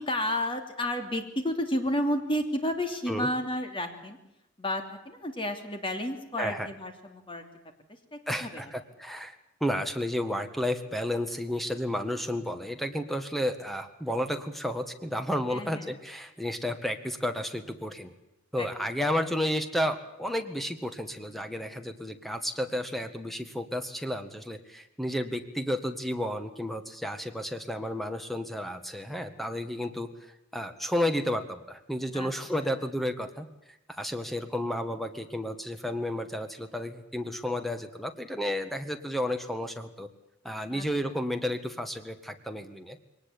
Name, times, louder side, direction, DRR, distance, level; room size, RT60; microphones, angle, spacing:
voice 1, 0.0-4.2 4.6-7.5 7.9-8.7 15.5-16.0 18.6-18.7 19.0-19.1 32.1-32.3 32.6-32.8 40.7-41.1, left 1 dB, 25° left, 6 dB, 3.0 m, -32 dB
voice 2, 8.3-9.3 9.6-18.1 18.5-30.1 30.5-33.5 33.9-40.1 40.4-43.0, equal, ahead, 8 dB, 1.8 m, -32 dB
22.5 x 19.0 x 8.7 m, 0.87 s
head